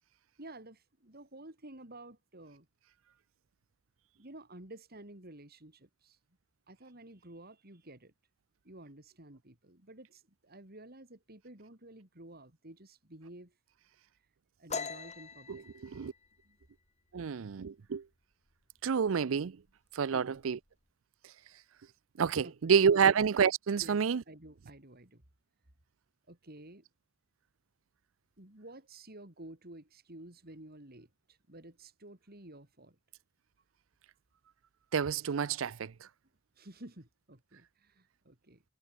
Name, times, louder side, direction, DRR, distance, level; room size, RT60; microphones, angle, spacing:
voice 1, 0.4-2.7 4.2-6.2 6.7-8.1 8.6-13.5 14.6-15.7 16.4-16.6 20.1-20.4 22.4-23.2 23.8-25.2 26.3-26.8 28.4-33.0 36.6-38.6, right 1 dB, 50° right, 4.1 m, -52 dB
sound 1, 14.7-18.1 18.5-18.8 19.2-19.7 20.0-20.7, left 5 dB, 35° left, 5.7 m, -43 dB
voice 2, 15.5-16.1 17.1-18.0 18.8-19.6 20.0-20.6 22.2-24.2 34.9-35.9, right 6 dB, 80° right, 0.5 m, -28 dB
head